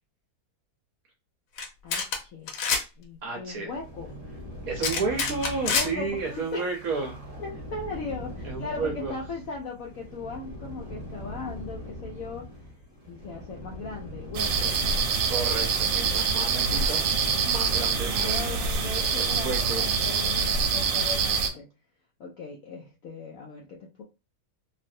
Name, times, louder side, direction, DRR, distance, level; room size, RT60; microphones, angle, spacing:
sound 1, 1.6-1.7 1.9-2.2 2.5-2.8 4.8-5.9, left 5 dB, 90° left, 1.5 m, -26 dB
voice 1, 1.8-2.5 3.0-4.1 5.7-6.7 7.4-12.5 13.1-14.8 16.7-17.3 18.1-21.7 22.2-24.0, left 3 dB, 75° left, -1 dB, 0.8 m, -38 dB
voice 2, 3.2-3.7 4.7-7.1 8.4-9.1 15.3-17.1 17.4-18.4 19.1-19.8, right 4 dB, 60° right, 1 dB, 1.0 m, -32 dB
sound 2, 3.7-21.4, equal, 10° right, 1.2 m, -42 dB
sound 3, 14.3-21.5, right 5 dB, 85° right, 1.3 m, -25 dB
3.2 x 2.5 x 2.6 m, 0.28 s
omnidirectional pair, 2.0 m